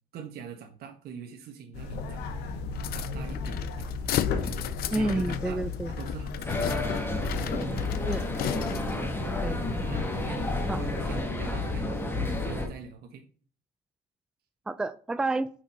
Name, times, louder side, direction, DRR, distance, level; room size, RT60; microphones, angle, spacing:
voice 1, 0.1-2.4 2.9-5.6 6.0-6.6 9.8-13.2, right 7 dB, 65° right, 3 dB, 1.0 m, -43 dB
sound 1, 1.7-11.2, left 4 dB, 80° left, 1.0 m, -35 dB
sound 2, 2.7-9.1, left 12 dB, 65° left, 0.5 m, -35 dB
voice 2, 4.9-5.9 8.1-8.3 9.4-9.6 10.7-10.8 14.7-15.5, right 2 dB, 5° right, 12 dB, 0.3 m, -29 dB
sound 3, 6.5-12.7, left 2 dB, 15° left, 1.3 m, -31 dB
6.0 x 4.3 x 4.2 m, 0.43 s
cardioid pair, 110°, 17 cm